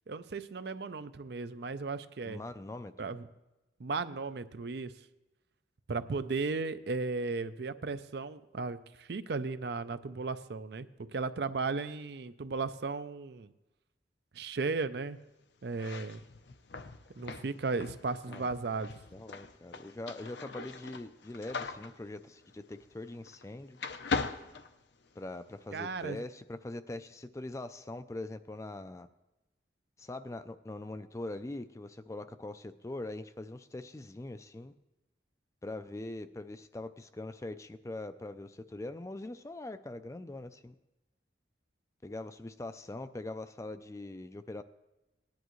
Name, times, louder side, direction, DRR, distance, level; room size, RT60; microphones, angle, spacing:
voice 1, 0.1-2.4 3.0-3.3 3.8-4.9 5.9-13.5 14.3-15.2 15.6-16.2 17.1-18.9 25.7-26.2, right 4 dB, 60° right, 12 dB, 0.5 m, -35 dB
voice 2, 2.3-2.9 18.3-18.5 19.1-23.8 25.2-29.1 30.0-34.7 35.6-40.8 42.0-44.6, left 2 dB, 15° left, 11 dB, 0.4 m, -42 dB
sound 1, 15.7-23.5 23.8-25.4, left 4 dB, 70° left, 0.7 m, -40 dB
18.5 x 10.5 x 3.1 m, 1.0 s
head